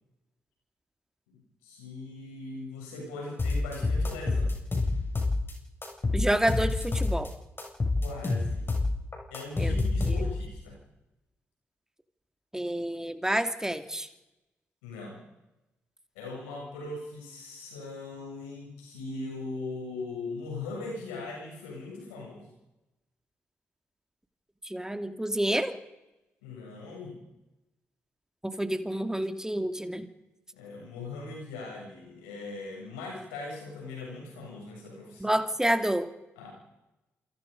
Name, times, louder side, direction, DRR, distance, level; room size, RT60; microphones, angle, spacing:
voice 1, 1.3-4.5 8.0-8.7 9.3-10.8 14.8-15.2 16.1-22.5 26.4-27.2 30.5-35.3 36.4-36.5, left 3 dB, 85° left, 0 dB, 7.9 m, -40 dB
sound 1, 3.4-5.5 5.8-7.3 7.6-10.5, left 3 dB, 35° left, 7.3 m, -27 dB
voice 2, 6.1-7.3 9.6-9.8 10.1-10.2 12.5-14.1 24.6-25.8 28.4-30.1 35.2-36.1, right 1 dB, 10° right, 8 dB, 2.7 m, -29 dB
27.5 x 24.5 x 5.4 m, 0.96 s
hypercardioid pair, 40°, 6 cm